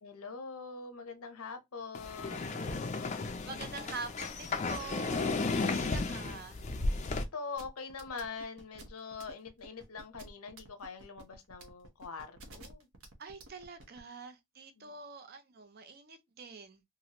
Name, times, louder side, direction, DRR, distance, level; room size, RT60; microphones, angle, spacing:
voice 1, 0.0-3.0 7.1-12.9 14.8-14.9, left 4 dB, 85° left, 0.7 m, -44 dB
sound 1, 1.9-7.2, left 3 dB, 35° left, 0.4 m, -34 dB
voice 2, 3.4-6.6 13.2-16.8, right 4 dB, 45° right, 0.5 m, -45 dB
sound 2, 7.6-14.0, right 2 dB, 80° right, 0.8 m, -52 dB
3.0 x 2.5 x 2.8 m
head